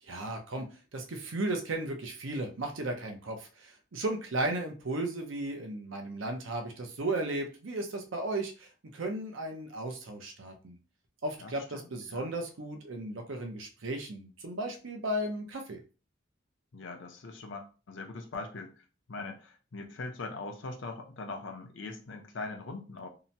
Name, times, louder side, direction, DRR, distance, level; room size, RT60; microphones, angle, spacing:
voice 1, 0.0-10.8 11.2-15.8, right 2 dB, 80° right, 4 dB, 0.6 m, -35 dB
voice 2, 11.4-12.3 16.7-23.1, left 3 dB, 70° left, 4 dB, 0.6 m, -41 dB
2.8 x 2.1 x 2.7 m, 0.34 s
head